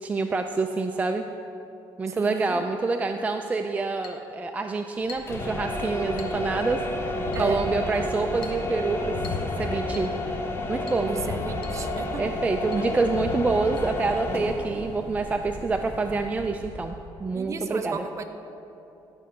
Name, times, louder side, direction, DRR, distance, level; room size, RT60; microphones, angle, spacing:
voice 1, 0.0-1.2 2.0-9.2 9.6-10.1 10.7-11.1 12.2-18.0, right 3 dB, 15° right, 5 dB, 0.4 m, -27 dB
voice 2, 2.1-2.6 7.3-7.6 11.1-12.3 12.8-12.9 17.3-18.2, right 5 dB, 40° right, 7 dB, 0.7 m, -34 dB
Chink clink, 4.0-4.3 5.1-5.4 6.2-6.4 7.3-7.5 8.4-8.7 9.2-9.5 9.9-10.2 10.9-11.1 11.6-11.8 12.1-12.2 12.7-12.9 13.8-13.9, left 5 dB, 65° left, 1.0 m, -44 dB
sound 1, 5.2-17.0, left 1 dB, 30° left, 1.0 m, -31 dB
11.5 x 5.4 x 6.4 m, 3.0 s
cardioid pair, 130°, 8 cm